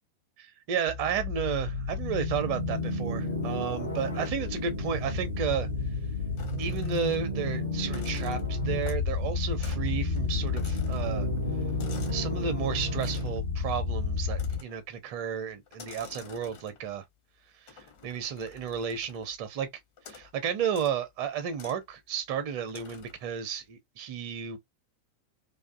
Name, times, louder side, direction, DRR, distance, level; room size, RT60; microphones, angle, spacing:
voice 1, 0.4-5.7 6.6-11.3 12.1-17.0 17.6-19.7 20.1-24.6, right 7 dB, 45° right, 0.5 m, -33 dB
sound 1, 0.9-14.6, left 3 dB, 80° left, 0.7 m, -31 dB
sound 2, 6.4-7.4 7.8-9.2 9.6-9.9 10.2-12.3 12.9-13.4 14.3-14.9 15.7-17.0 17.7-19.4 20.0-20.3 20.7-21.0 21.5-21.8 22.7-23.3, left 6 dB, 50° left, 0.9 m, -50 dB
2.4 x 2.3 x 2.2 m
figure-of-eight pair, 90°, 0 cm